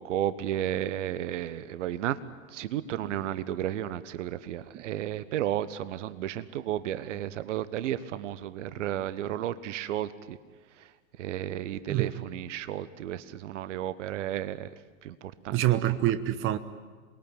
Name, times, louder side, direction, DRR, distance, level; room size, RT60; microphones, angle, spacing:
voice 1, 0.0-2.2 2.5-10.4 11.2-14.7 15.0-15.1 15.4-15.6, right 11 dB, 60° right, 15 dB, 1.2 m, -33 dB
voice 2, 11.9-12.2 15.5-16.6, right 13 dB, 30° right, 12 dB, 1.1 m, -27 dB
27.5 x 21.0 x 9.0 m, 1.4 s
figure-of-eight pair, 95°, 42 cm